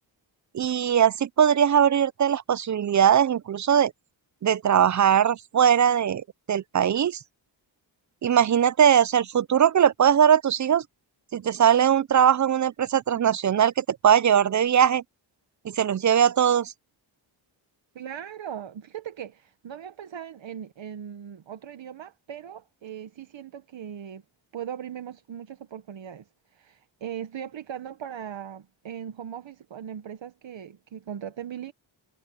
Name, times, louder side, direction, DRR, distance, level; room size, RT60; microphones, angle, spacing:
voice 1, 0.5-3.9 4.4-7.2 8.2-10.8 11.3-15.0 15.6-16.7, right 9 dB, 40° right, 0.4 m, -20 dB
voice 2, 17.9-24.2 24.5-26.2 26.5-31.7, right 9 dB, 70° right, 1.2 m, -39 dB
wide cardioid pair, 100°, 47 cm